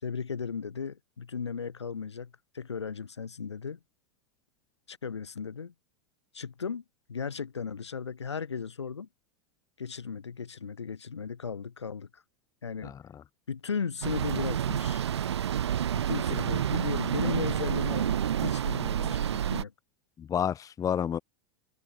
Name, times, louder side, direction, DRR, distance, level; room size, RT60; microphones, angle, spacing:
voice 1, 0.0-3.8 4.9-5.7 6.3-6.8 7.1-9.1 9.8-12.2 12.6-12.9 13.5-15.0 15.9-19.7, left 6 dB, 90° left, 4.6 m, -36 dB
voice 2, 12.8-13.2 20.2-21.2, left 8 dB, 25° left, 1.4 m, -30 dB
sound 1, 14.0-19.6, right 9 dB, 75° right, 3.6 m, -29 dB
open air
hypercardioid pair, 105°, 14 cm